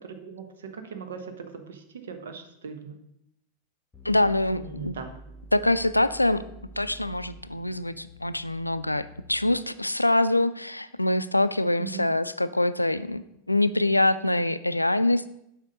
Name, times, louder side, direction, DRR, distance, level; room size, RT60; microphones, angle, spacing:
voice 1, 0.0-3.0 4.5-5.1 11.8-12.1, right 6 dB, 65° right, 7 dB, 1.0 m, -39 dB
sound 1, 3.9-9.9, right 1 dB, 15° left, 1.0 m, -48 dB
voice 2, 4.0-5.0 5.5-6.4 6.8-15.3, left 1 dB, 85° left, 14 dB, 0.3 m, -24 dB
7.3 x 4.9 x 5.3 m, 0.80 s
figure-of-eight pair, 90°, 0 cm